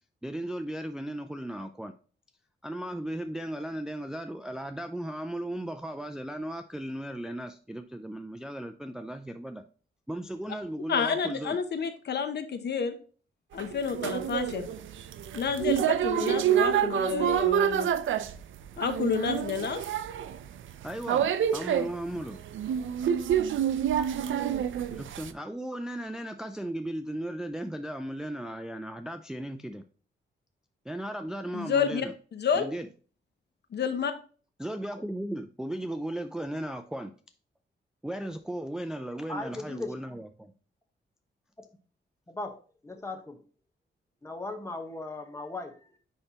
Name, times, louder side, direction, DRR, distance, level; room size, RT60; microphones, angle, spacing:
voice 1, 0.2-1.9 2.6-9.6 10.1-11.6 20.8-22.4 24.9-29.8 30.9-32.1 32.5-32.9 34.6-37.1 38.0-40.5, right 1 dB, 5° right, 0.3 m, -36 dB
voice 2, 10.9-12.9 13.5-14.7 15.3-17.9 18.8-19.8 31.5-32.1 32.3-32.7 33.7-34.1, left 6 dB, 60° left, 0.7 m, -29 dB
sound 1, 13.6-25.3, right 9 dB, 80° right, 0.4 m, -28 dB
voice 3, 39.3-40.2 42.3-42.5 42.8-43.4 44.2-46.0, left 2 dB, 15° left, 1.0 m, -38 dB
9.8 x 3.3 x 2.9 m
wide cardioid pair, 120°, 20 cm